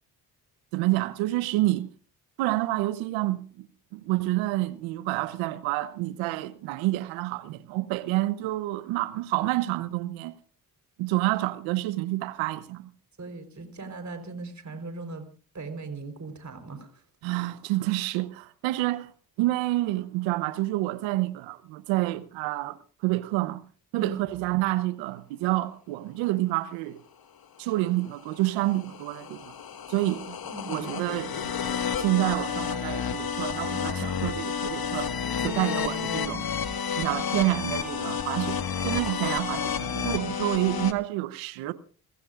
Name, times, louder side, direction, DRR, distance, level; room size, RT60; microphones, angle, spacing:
voice 1, 0.7-1.9 2.4-3.7 3.9-10.4 11.0-12.9 17.2-19.1 19.4-22.8 23.0-23.6 23.9-27.0 27.6-29.5 29.9-30.4 30.7-31.5 32.0-35.1 35.4-36.5 37.0-41.7, right 18 dB, 85° right, 1.0 m, -28 dB
voice 2, 13.2-15.3 15.5-17.0 24.0-24.2 29.9-30.1 30.4-30.9, right 3 dB, 40° right, 4.3 m, -39 dB
sound 1, 27.9-40.9, left 7 dB, 50° left, 1.7 m, -31 dB
29.5 x 15.5 x 2.5 m
hypercardioid pair, 45°, 45 cm